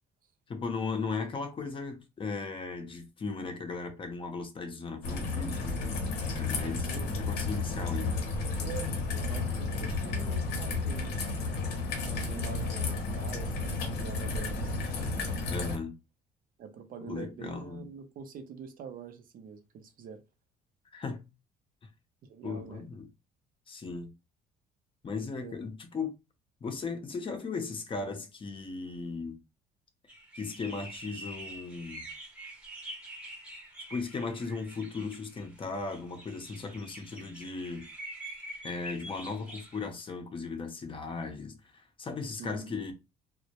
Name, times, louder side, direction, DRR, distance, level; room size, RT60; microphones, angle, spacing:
voice 1, 0.5-6.0 6.3-8.3 15.5-15.9 17.0-17.8 20.9-21.2 22.4-23.1 23.7-24.1 25.0-26.1 26.6-29.4 30.3-32.1 33.9-37.9 38.6-42.9, left 4 dB, 30° left, 0.6 m, -37 dB
Raindrop / Trickle dribble, 5.0-15.8, left 3 dB, 90° left, 0.7 m, -32 dB
voice 2, 6.8-7.1 8.6-11.3 12.0-14.9 15.5-15.7 16.6-20.2 22.2-22.9 25.4-25.6 42.4-42.7, right 6 dB, 55° right, 0.5 m, -45 dB
sound 1, 30.1-39.9, right 1 dB, 5° right, 0.7 m, -46 dB
2.1 x 2.1 x 2.8 m
cardioid pair, 110°, 17 cm